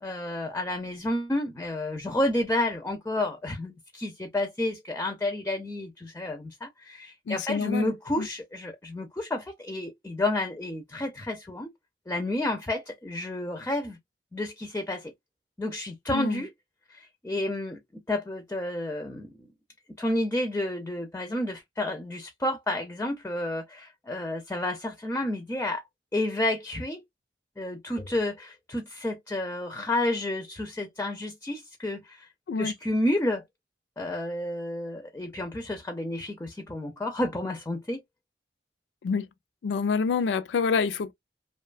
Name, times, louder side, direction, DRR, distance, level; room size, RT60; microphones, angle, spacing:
voice 1, 0.0-11.7 12.1-14.0 14.3-15.1 15.6-16.5 16.9-19.5 20.0-25.8 26.1-27.0 27.6-32.3 32.6-33.4 34.0-38.0, left 1 dB, 15° left, 0.4 m, -30 dB
voice 2, 7.3-8.3 16.1-16.4 32.5-32.7 39.0-39.3 39.6-41.1, left 5 dB, 90° left, 0.4 m, -27 dB
2.6 x 2.2 x 2.3 m
head